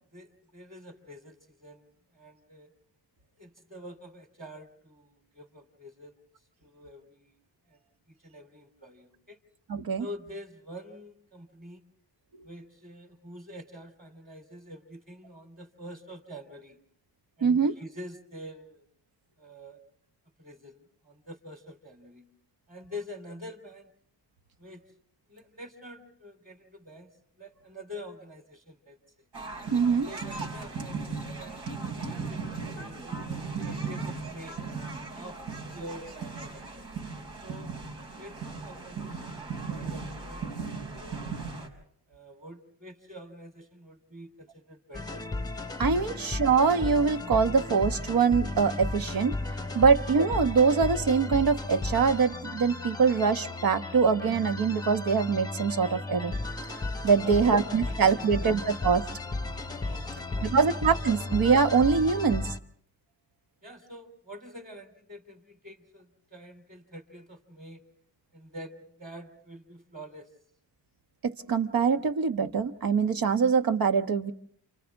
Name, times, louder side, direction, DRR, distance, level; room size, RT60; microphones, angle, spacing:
voice 1, 0.1-1.8 2.1-2.7 3.4-6.1 6.6-7.3 7.7-7.8 8.1-9.4 10.0-11.8 12.4-16.8 17.4-18.8 19.4-19.8 20.4-22.2 22.7-23.9 24.6-24.8 25.3-27.1 27.4-29.3 29.9-31.6 32.1-34.6 35.1-35.4 35.7-36.8 37.4-37.9 38.2-38.4 38.6-41.3 42.1-45.3 46.0-46.1 57.2-58.5 59.8-60.7 63.6-67.8 68.3-70.3, equal, 20° right, 5 dB, 3.3 m, -46 dB
voice 2, 9.7-10.1 17.4-17.7 29.7-30.1 45.8-49.3 49.7-56.3 57.0-59.0 60.4-62.5 71.2-74.3, right 5 dB, 55° right, 8 dB, 1.2 m, -24 dB
sound 1, 29.3-41.7, right 4 dB, 80° right, 5.4 m, -37 dB
sound 2, 44.9-62.6, left 2 dB, 10° left, 1.0 m, -34 dB
29.0 x 29.0 x 3.6 m, 0.62 s
cardioid pair, 125°, 42 cm